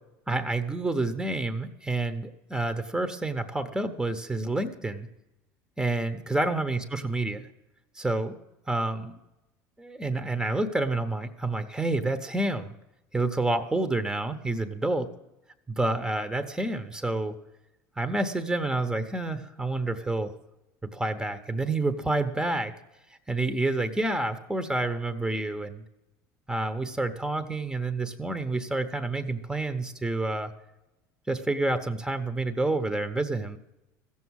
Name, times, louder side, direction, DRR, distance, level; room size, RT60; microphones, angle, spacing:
voice 1, 0.3-5.1 5.8-7.5 7.9-8.4 8.7-9.2 9.8-12.7 13.1-15.1 15.7-17.3 18.0-20.3 20.9-22.7 23.1-25.8 26.5-30.5 31.3-33.6, right 2 dB, 5° right, 9 dB, 0.9 m, -28 dB
15.0 x 7.2 x 6.4 m, 0.96 s
supercardioid pair, 95°, 10 cm